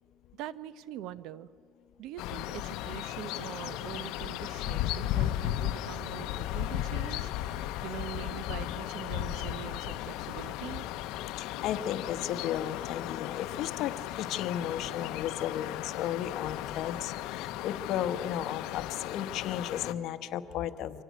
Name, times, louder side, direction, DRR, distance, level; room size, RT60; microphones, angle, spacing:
voice 1, 0.4-1.5 2.0-10.9, right 12 dB, 75° right, 16 dB, 0.8 m, -43 dB
sound 1, 2.2-19.9, left 13 dB, 85° left, 0.7 m, -35 dB
voice 2, 11.4-21.0, left 10 dB, 65° left, 11 dB, 1.0 m, -34 dB
25.5 x 16.5 x 9.3 m, 2.4 s
cardioid pair, 125°, 0 cm